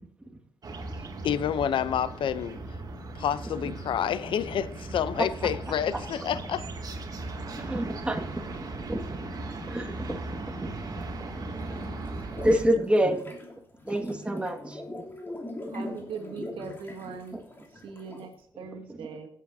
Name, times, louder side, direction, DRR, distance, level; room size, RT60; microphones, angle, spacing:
sound 1, 0.6-12.7, right 2 dB, 45° right, 2.3 m, -38 dB
voice 1, 1.2-2.6 3.1-6.7, left 9 dB, 70° left, 0.6 m, -28 dB
voice 2, 7.6-9.0 9.6-10.2 10.6-10.7 11.3-11.4 12.4-13.2 13.9-14.8, equal, 15° right, 1.8 m, -27 dB
sound 2, 11.6-18.3, left 1 dB, 25° left, 3.0 m, -41 dB
voice 3, 15.7-17.4 17.7-19.3, right 5 dB, 80° right, 2.0 m, -40 dB
16.5 x 8.4 x 2.7 m
cardioid pair, 90°, 9 cm